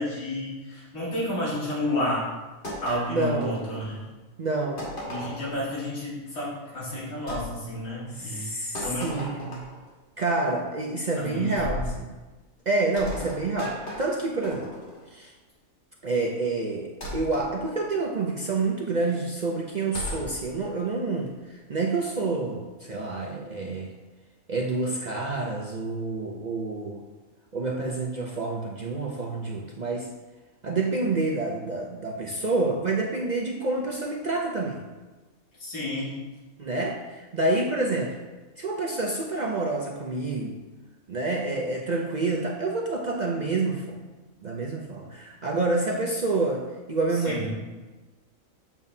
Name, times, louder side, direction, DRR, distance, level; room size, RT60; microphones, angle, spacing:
voice 1, 0.0-2.3 2.8-4.0 5.1-8.5 8.8-9.5 11.2-11.9 35.6-36.2 47.1-47.5, left 1 dB, 80° left, -8 dB, 2.4 m, -31 dB
sound 1, 2.6-4.1 4.8-5.6 7.3-7.5 8.7-9.9 11.6-12.0 13.0-15.1 17.0-17.5 19.9-20.3, equal, 40° left, 1.7 m, -36 dB
voice 2, 3.1-3.6 4.4-4.8 8.1-9.4 10.2-12.1 12.7-14.7 15.1-15.3 16.0-21.3 21.7-23.9 24.5-27.0 27.5-30.1 30.6-34.8 36.6-38.1 38.6-40.6 41.1-44.0 44.4-47.5, right 3 dB, 55° right, -1 dB, 0.5 m, -28 dB
7.1 x 6.8 x 2.7 m, 1.2 s
omnidirectional pair, 1.5 m